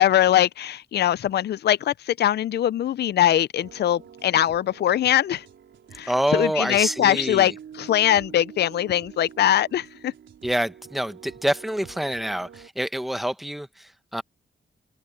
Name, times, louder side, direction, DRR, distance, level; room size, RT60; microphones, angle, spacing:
voice 1, 0.0-5.4 5.9-7.5 7.8-10.1, left 11 dB, 60° left, 0.4 m, -22 dB
sound 1, 3.6-12.7, right 8 dB, 80° right, 4.1 m, -46 dB
voice 2, 6.1-7.5 10.4-14.2, equal, ahead, 1.1 m, -27 dB
wide cardioid pair, 120°, 19 cm